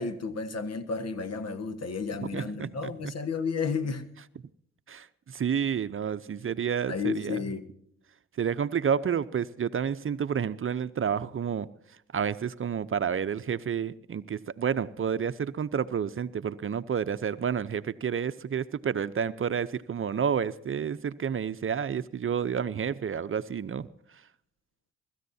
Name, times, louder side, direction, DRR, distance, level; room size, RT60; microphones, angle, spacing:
voice 1, 0.0-4.1 6.9-7.7, left 5 dB, 55° left, 1.6 m, -32 dB
voice 2, 2.3-3.1 4.9-7.4 8.4-11.7 12.1-23.9, right 7 dB, 45° right, 0.7 m, -30 dB
24.0 x 14.0 x 2.8 m
supercardioid pair, 50°, 30 cm